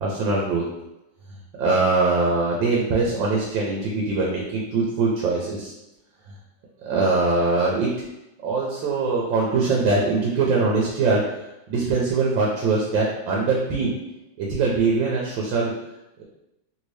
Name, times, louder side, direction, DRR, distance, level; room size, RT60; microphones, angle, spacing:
voice 1, 0.0-0.6 1.6-5.7 6.8-7.9 8.4-11.2 11.7-14.0 14.4-15.7, right 3 dB, 85° right, -3 dB, 1.4 m, -22 dB
3.2 x 2.7 x 3.1 m, 0.91 s
omnidirectional pair, 2.0 m